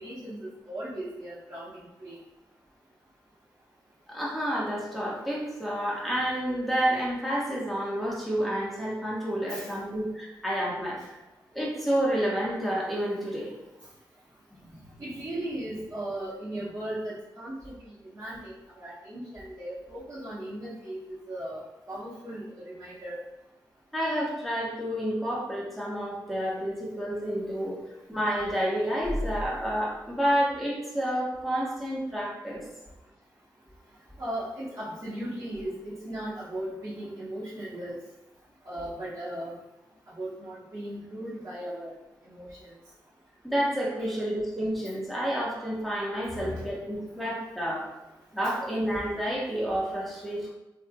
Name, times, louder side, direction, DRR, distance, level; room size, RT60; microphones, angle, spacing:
voice 1, 0.0-2.2 9.5-9.7 15.0-17.7 18.1-21.0 21.3-21.6 21.9-23.2 34.2-38.0 38.6-39.5 40.2-41.9 42.3-42.8 46.4-46.6 48.4-48.5, right 1 dB, 40° right, -10 dB, 1.4 m, -37 dB
voice 2, 4.1-11.2 11.5-13.5 14.5-14.6 23.9-27.8 28.1-32.6 43.4-47.8 48.3-50.5, equal, ahead, -6 dB, 1.4 m, -29 dB
3.4 x 3.2 x 2.4 m, 1.0 s
cardioid pair, 55°, 8 cm